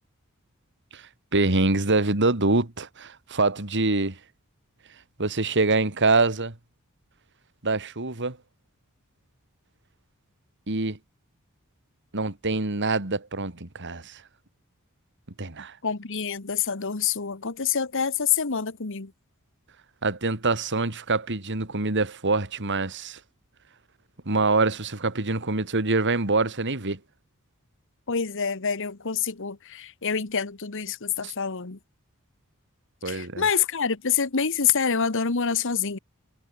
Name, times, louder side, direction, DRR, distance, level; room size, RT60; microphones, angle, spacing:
voice 1, 0.9-4.2 5.2-6.5 7.6-8.4 10.7-11.0 12.1-14.2 15.4-15.8 20.0-23.2 24.3-27.0 31.2-31.3 33.0-33.5, right 3 dB, 55° right, 2.5 m, -25 dB
voice 2, 15.8-19.1 28.1-31.8 33.0-36.0, left 6 dB, 60° left, 1.4 m, -26 dB
head